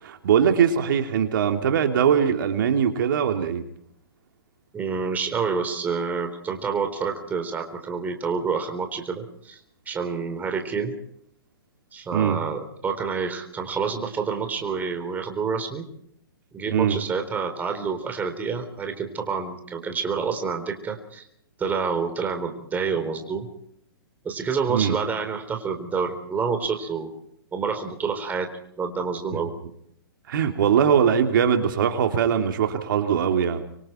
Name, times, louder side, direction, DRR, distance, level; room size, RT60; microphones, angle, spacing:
voice 1, 0.0-3.6 12.1-12.4 16.7-17.0 24.7-25.0 30.3-33.6, right 8 dB, 60° right, 5 dB, 3.2 m, -21 dB
voice 2, 4.7-9.6 9.9-10.9 11.9-15.8 16.5-21.3 21.6-23.5 24.2-27.1 27.5-28.5 28.8-29.5, right 5 dB, 15° right, 5 dB, 3.9 m, -28 dB
26.0 x 24.5 x 4.6 m, 0.70 s
hypercardioid pair, 140°, 12 cm